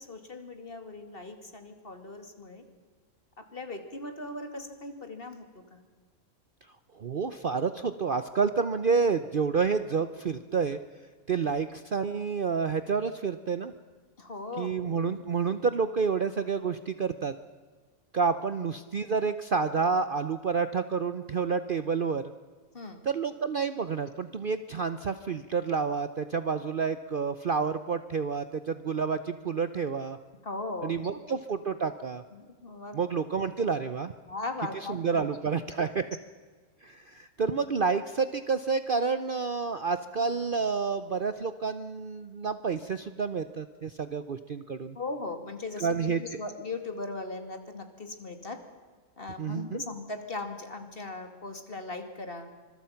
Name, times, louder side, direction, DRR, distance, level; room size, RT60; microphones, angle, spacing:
voice 1, 0.0-2.6 3.4-5.8 14.2-14.7 15.0-15.1 22.7-23.0 30.4-31.2 32.3-33.0 34.2-35.3 44.9-48.6 49.2-52.5, left 2 dB, 40° left, 7 dB, 2.6 m, -38 dB
voice 2, 7.0-10.8 11.3-13.7 14.6-17.3 18.1-22.2 23.0-30.2 30.8-32.2 32.9-34.1 34.7-36.1 36.8-45.0 45.8-46.2 49.4-49.8, right 5 dB, 45° right, 11 dB, 0.8 m, -29 dB
26.0 x 22.0 x 5.8 m, 1.5 s
omnidirectional pair, 1.5 m